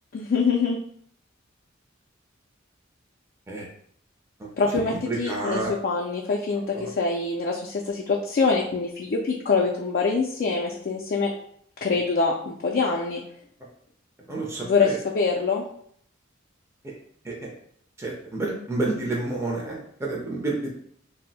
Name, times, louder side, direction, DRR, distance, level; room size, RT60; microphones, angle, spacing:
voice 1, 0.1-0.8 4.6-11.3 11.8-13.2 14.6-15.6, left 4 dB, 45° left, -1 dB, 0.3 m, -24 dB
voice 2, 4.9-5.7 14.3-15.0 17.3-17.4 18.0-20.7, right 2 dB, 15° right, -3 dB, 0.5 m, -29 dB
2.6 x 2.0 x 4.0 m, 0.65 s
head